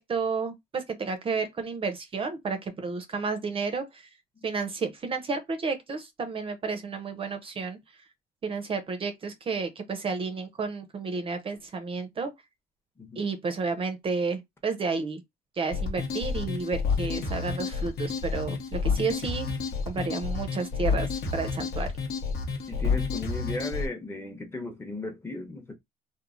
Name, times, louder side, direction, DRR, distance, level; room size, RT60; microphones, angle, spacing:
voice 1, 0.0-4.1 4.4-7.8 8.4-12.3 13.2-15.2 15.6-19.5 19.9-21.9, right 4 dB, 35° right, 0.5 m, -31 dB
sound 1, 15.7-23.9, left 5 dB, 80° left, 0.9 m, -30 dB
voice 2, 22.7-25.8, left 2 dB, 15° left, 0.7 m, -36 dB
3.0 x 2.0 x 2.4 m
cardioid pair, 110°, 17 cm